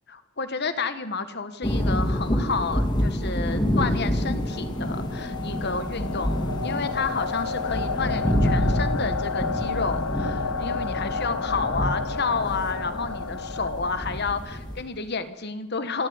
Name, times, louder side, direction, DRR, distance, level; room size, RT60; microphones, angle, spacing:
voice 1, 0.1-16.1, left 4 dB, 50° left, 11 dB, 1.6 m, -30 dB
sound 1, 1.6-14.8, equal, 20° left, 3.1 m, -28 dB
sound 2, 3.7-14.6, left 5 dB, 85° left, 0.9 m, -32 dB
26.0 x 12.5 x 9.8 m, 1.0 s
head